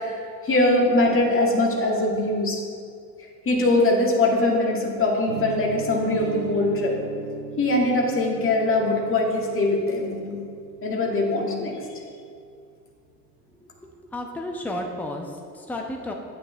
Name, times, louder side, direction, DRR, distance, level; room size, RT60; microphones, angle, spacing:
voice 1, 0.0-2.6 3.5-7.0 7.6-10.4 10.8-11.8, left 2 dB, 25° left, -1 dB, 1.9 m, -22 dB
sound 1, 5.3-11.2, right 7 dB, 70° right, 0.9 m, -37 dB
voice 2, 13.5-16.1, left 1 dB, 5° left, 2 dB, 0.9 m, -33 dB
9.1 x 8.8 x 3.3 m, 2.3 s
figure-of-eight pair, 65°, 47 cm